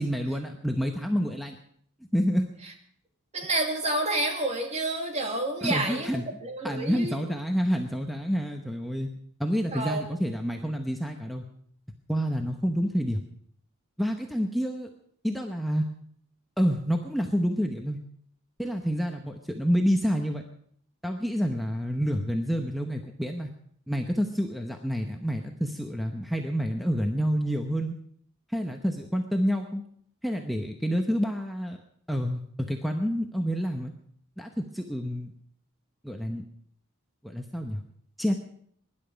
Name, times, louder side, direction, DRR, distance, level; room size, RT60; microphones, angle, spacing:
voice 1, 0.0-1.6 2.1-2.5 5.6-6.3 6.6-9.1 9.4-11.5 12.1-13.2 14.0-14.9 15.2-15.9 16.6-18.0 18.6-20.4 21.0-23.5 23.9-27.9 28.5-29.8 30.2-31.8 32.1-33.9 34.4-35.3 36.0-36.4 37.2-37.8 38.2-38.3, equal, ahead, 3 dB, 0.9 m, -28 dB
voice 2, 3.3-7.2 9.7-10.0, right 2 dB, 30° right, 3 dB, 2.4 m, -29 dB
23.0 x 11.0 x 5.2 m, 0.64 s
head